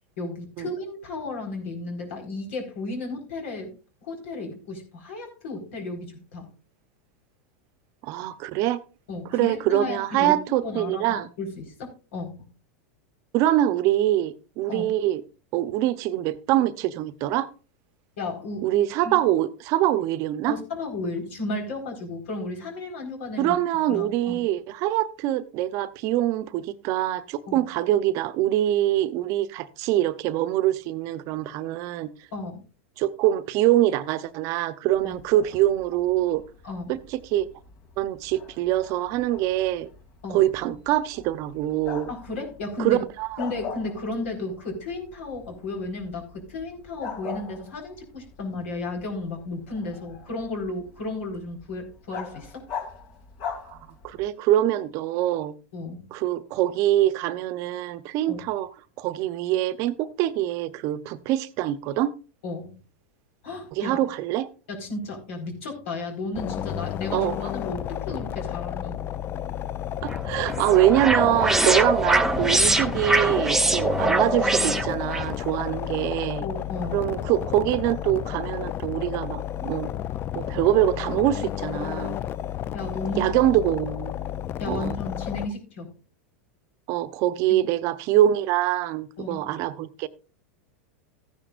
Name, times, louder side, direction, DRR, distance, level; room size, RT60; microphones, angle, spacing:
voice 1, 0.2-3.7 4.0-6.5 9.1-10.3 10.6-12.4 14.7-14.9 18.2-19.1 20.5-23.5 23.9-24.4 27.5-27.6 32.3-32.7 35.0-35.1 36.6-36.9 40.2-40.4 42.1-43.0 43.4-52.6 55.7-56.0 58.3-58.4 62.4-62.7 63.4-64.0 64.7-69.0 74.0-74.1 76.4-77.1 82.7-83.3 84.6-85.9 87.5-87.6 89.2-89.5, left 2 dB, 75° left, 4.5 m, -34 dB
voice 2, 8.0-8.8 9.3-11.3 13.3-15.2 15.5-17.5 18.6-20.6 23.4-32.1 33.0-36.4 36.9-37.5 38.0-39.9 40.3-42.1 42.8-43.4 53.7-55.5 56.1-58.7 59.0-62.1 63.8-64.5 67.1-67.5 70.0-76.4 76.9-79.9 80.3-82.2 83.2-84.1 84.7-85.0 86.9-90.1, right 13 dB, 50° right, 0.8 m, -24 dB
Bark, 34.9-54.3, left 6 dB, 55° left, 2.6 m, -42 dB
sound 1, 66.3-85.5, left 11 dB, 35° left, 0.4 m, -32 dB
sound 2, 70.1-75.3, right 2 dB, 5° right, 0.7 m, -23 dB
14.5 x 10.0 x 2.5 m
supercardioid pair, 120°, 7 cm